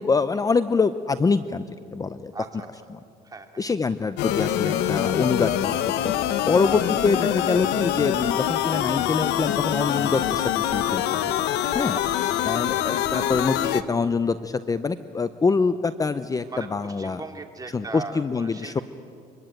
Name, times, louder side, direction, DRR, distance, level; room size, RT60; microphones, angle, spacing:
voice 1, 0.0-1.7 1.9-2.3 3.6-5.5 6.0-11.4 11.7-12.0 12.4-17.2 17.7-18.8, left 4 dB, 20° left, 13 dB, 0.6 m, -25 dB
voice 2, 2.3-2.7 3.2-3.5 6.7-6.8 11.9-12.1 12.4-12.5 16.5-18.8, right 4 dB, 20° right, 4 dB, 2.7 m, -38 dB
sound 1, 4.2-13.8, left 11 dB, 85° left, 1.1 m, -25 dB
26.0 x 21.5 x 9.1 m, 2.4 s
cardioid pair, 110°, 17 cm